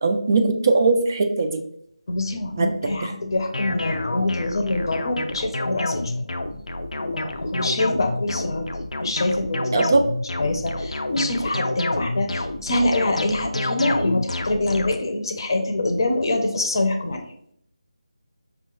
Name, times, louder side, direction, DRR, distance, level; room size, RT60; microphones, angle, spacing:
voice 1, 0.0-1.6 2.6-3.1 9.7-10.0, right 3 dB, 30° right, 5 dB, 0.3 m, -20 dB
voice 2, 2.1-6.1 7.0-8.7 9.0-10.1 10.4-17.2, left 2 dB, 40° left, 4 dB, 0.6 m, -25 dB
sound 1, 3.5-15.0, left 2 dB, 85° left, 0.5 m, -28 dB
5.4 x 2.4 x 3.0 m, 0.68 s
figure-of-eight pair, 170°, 3 cm